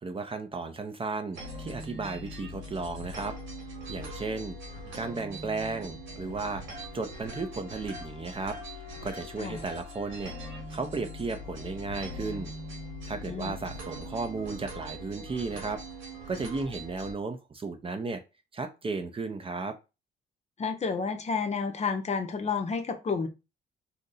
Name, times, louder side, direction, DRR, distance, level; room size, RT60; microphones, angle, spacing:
voice 1, 0.0-3.3 3.9-4.6 4.9-6.6 6.9-10.3 10.7-12.5 13.0-15.8 16.3-18.2 18.5-19.7, right 3 dB, 25° right, 0.5 m, -34 dB
sound 1, 1.3-17.1, equal, 85° right, 1.5 m, -41 dB
voice 2, 13.3-13.6 20.6-23.3, left 5 dB, 35° left, 0.6 m, -30 dB
2.7 x 2.5 x 4.0 m
cardioid pair, 90°, 20 cm